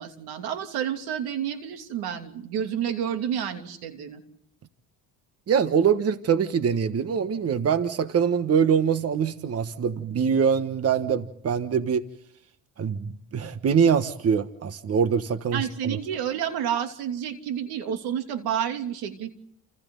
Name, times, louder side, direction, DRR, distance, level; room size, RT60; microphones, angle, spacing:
voice 1, 0.0-4.2 15.5-19.3, right 9 dB, 85° right, 7 dB, 3.0 m, -30 dB
voice 2, 5.5-12.0 12.8-16.0, right 7 dB, 40° right, 11 dB, 1.3 m, -24 dB
29.0 x 28.5 x 3.9 m, 0.71 s
cardioid pair, 110°, 37 cm